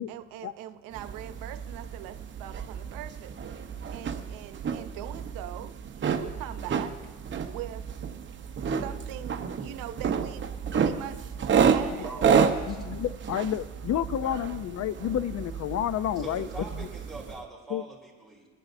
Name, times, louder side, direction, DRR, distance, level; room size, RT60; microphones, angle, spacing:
voice 1, 0.0-6.9 7.4-8.0 8.6-10.5 10.7-11.3 11.7-12.2, right 12 dB, 85° right, 10 dB, 0.8 m, -42 dB
sound 1, 0.9-17.4, right 6 dB, 35° right, 0.9 m, -30 dB
voice 2, 3.8-4.3 12.0-12.9 14.2-14.4 16.2-18.5, right 3 dB, ahead, -3 dB, 4.1 m, -43 dB
voice 3, 12.7-16.5 16.8-16.9 17.7-17.8, left 10 dB, 50° left, 15 dB, 0.6 m, -30 dB
23.0 x 9.9 x 2.7 m, 1.3 s
cardioid pair, 120°, 33 cm